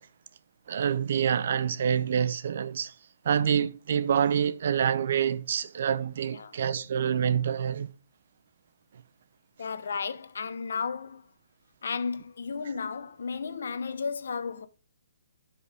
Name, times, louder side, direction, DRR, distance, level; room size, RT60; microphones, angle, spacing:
voice 1, 0.7-2.9 3.2-7.9, right 8 dB, 55° right, 0.6 m, -27 dB
voice 2, 9.6-11.2 11.8-14.7, left 5 dB, 70° left, 0.9 m, -33 dB
11.0 x 5.5 x 3.4 m
hypercardioid pair, 165°, 0 cm